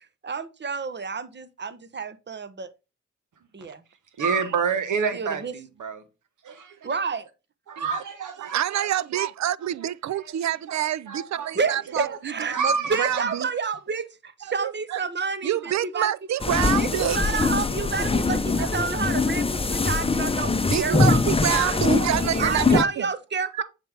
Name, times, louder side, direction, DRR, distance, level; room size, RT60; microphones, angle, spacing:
voice 1, 0.2-2.7 3.5-3.8 5.1-5.5 6.8-7.2 11.5-12.6 12.9-16.1 16.8-21.8 22.4-23.6, right 5 dB, 35° right, 0.9 m, -29 dB
voice 2, 4.2-6.0 6.4-6.8 7.8-8.9 10.2-10.3 10.7-10.8 11.1-11.5 12.4-13.2, right 5 dB, 90° right, 1.2 m, -28 dB
voice 3, 8.4-13.5 14.4-15.0 15.4-17.2 18.6-18.7 20.6-23.1 23.6-23.7, right 11 dB, 65° right, 0.5 m, -27 dB
sound 1, 16.4-22.8, left 3 dB, 20° left, 0.6 m, -23 dB
7.2 x 4.4 x 3.4 m
cardioid pair, 60°, 30 cm